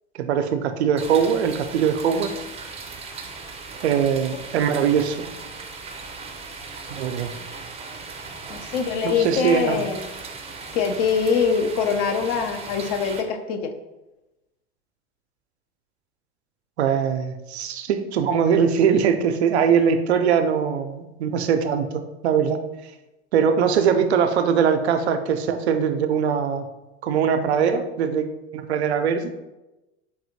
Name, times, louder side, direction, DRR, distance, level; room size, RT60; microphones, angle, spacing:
voice 1, 0.2-2.4 3.8-5.2 6.9-7.3 9.0-9.8 16.8-22.6 23.3-26.7 27.0-29.3, right 7 dB, 70° right, 8 dB, 0.5 m, -21 dB
sound 1, 1.0-13.2, right 4 dB, 20° right, 0.5 m, -38 dB
voice 2, 8.5-10.1 10.7-13.7, left 6 dB, 50° left, 6 dB, 0.5 m, -23 dB
4.7 x 2.7 x 2.6 m, 1.0 s
figure-of-eight pair, 80°, 34 cm